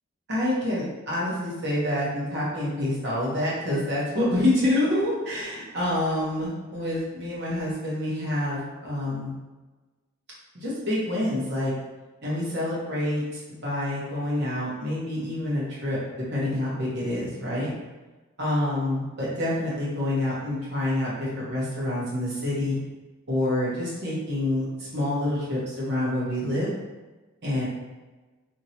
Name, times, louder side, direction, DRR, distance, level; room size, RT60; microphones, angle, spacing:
voice 1, 0.3-9.3 10.5-11.7 12.2-13.2 13.5-16.0 16.3-17.7 18.4-22.8 23.3-26.7 27.4-27.6, left 1 dB, 50° right, -7 dB, 1.1 m, -27 dB
2.9 x 2.8 x 2.8 m, 1.2 s
head